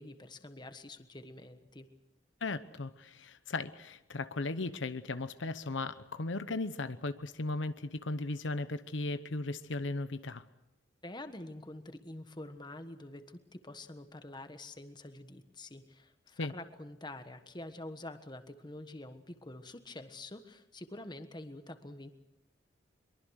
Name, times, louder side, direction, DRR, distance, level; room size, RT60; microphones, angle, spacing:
voice 1, 0.0-1.9 11.0-22.1, left 2 dB, 25° left, 9 dB, 1.3 m, -47 dB
voice 2, 2.4-10.4 16.4-16.5, left 2 dB, 85° left, 12 dB, 0.9 m, -36 dB
23.5 x 23.0 x 6.5 m, 0.88 s
head